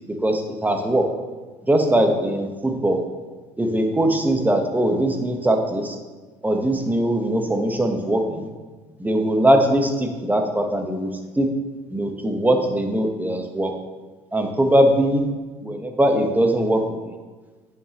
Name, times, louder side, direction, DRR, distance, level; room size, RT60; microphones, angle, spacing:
voice 1, 0.1-1.1 1.7-3.0 3.6-6.0 6.4-8.5 9.0-11.5 11.9-13.7 14.3-15.2 15.6-17.2, right 1 dB, 10° right, 4 dB, 1.2 m, -21 dB
9.2 x 5.8 x 3.0 m, 1.3 s
hypercardioid pair, 70°, 15 cm